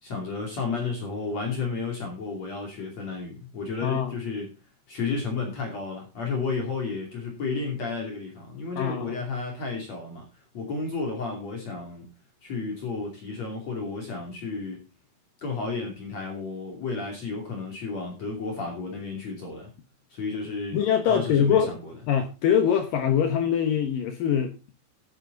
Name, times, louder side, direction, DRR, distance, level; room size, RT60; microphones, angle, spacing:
voice 1, 0.0-4.5 4.9-10.3 10.5-12.0 12.4-14.8 15.4-19.7 20.1-20.8 21.1-21.9, left 4 dB, 40° left, 1 dB, 3.4 m, -32 dB
voice 2, 3.8-4.1 8.8-9.2 20.7-21.8 22.1-24.5, left 8 dB, 70° left, 7 dB, 2.2 m, -23 dB
12.0 x 9.9 x 3.9 m, 0.28 s
omnidirectional pair, 5.1 m